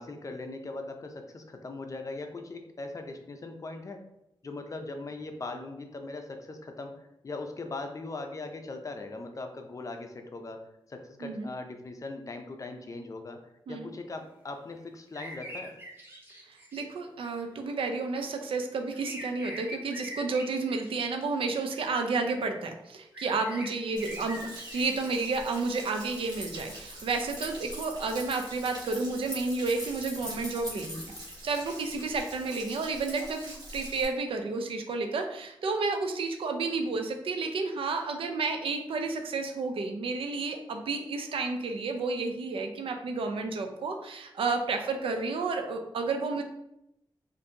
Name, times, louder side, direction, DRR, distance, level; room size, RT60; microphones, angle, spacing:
voice 1, 0.0-4.0 4.4-6.9 7.2-10.6 10.9-13.4 13.7-15.7, left 3 dB, 35° left, 5 dB, 0.5 m, -40 dB
sound 1, 15.1-16.8 18.9-21.1 21.5-21.6 23.1-25.0, equal, 25° right, 0.9 m, -43 dB
voice 2, 16.5-31.0 31.4-33.4 33.7-46.4, right 3 dB, 80° right, 5 dB, 0.5 m, -31 dB
Stream / Splash splatter / Trickle dribble, 24.0-34.0, right 1 dB, 45° right, 1.2 m, -46 dB
sound 2, 26.1-32.4, left 1 dB, 10° left, 1.5 m, -43 dB
4.2 x 2.6 x 2.6 m, 0.83 s
wide cardioid pair, 100°, 9 cm